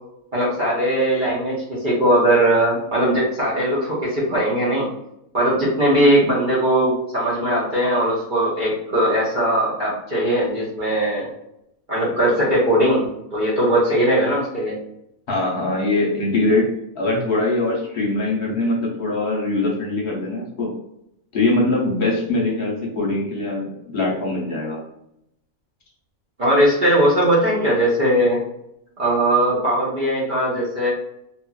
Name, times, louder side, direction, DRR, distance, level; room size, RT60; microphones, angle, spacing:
voice 1, 0.3-4.9 5.3-11.3 11.9-13.0 13.3-14.8 26.4-28.4 29.0-30.9, right 1 dB, 45° right, -7 dB, 0.7 m, -19 dB
voice 2, 15.3-16.7 17.0-20.7 21.3-24.8, left 2 dB, 50° left, -2 dB, 0.9 m, -22 dB
2.7 x 2.5 x 2.3 m, 0.79 s
omnidirectional pair, 1.4 m